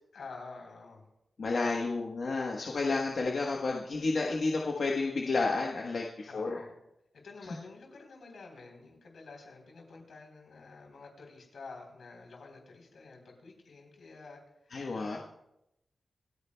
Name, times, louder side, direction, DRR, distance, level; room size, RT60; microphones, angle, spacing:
voice 1, 0.1-1.1 6.3-6.7 7.2-15.2, left 3 dB, 85° left, 1 dB, 3.5 m, -49 dB
voice 2, 1.4-6.6 14.7-15.2, left 3 dB, 55° left, -1 dB, 1.1 m, -31 dB
27.0 x 9.7 x 2.2 m, 0.85 s
wide cardioid pair, 165°, 0 cm